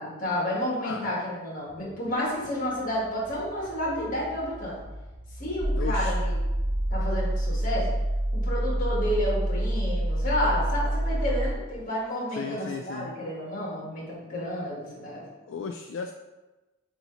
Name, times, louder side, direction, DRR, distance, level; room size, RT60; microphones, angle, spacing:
voice 1, 0.0-4.7 5.4-6.4 6.9-7.9 8.3-15.2, left 1 dB, 40° left, -4 dB, 1.9 m, -30 dB
voice 2, 0.8-1.1 5.7-6.2 12.3-13.1 15.5-16.1, left 5 dB, 60° left, 4 dB, 0.4 m, -35 dB
sound 1, 1.7-7.0, equal, 10° right, 1.9 m, -45 dB
sound 2, 5.6-11.5, right 1 dB, 35° right, 0.6 m, -27 dB
7.9 x 3.0 x 4.0 m, 1.1 s
head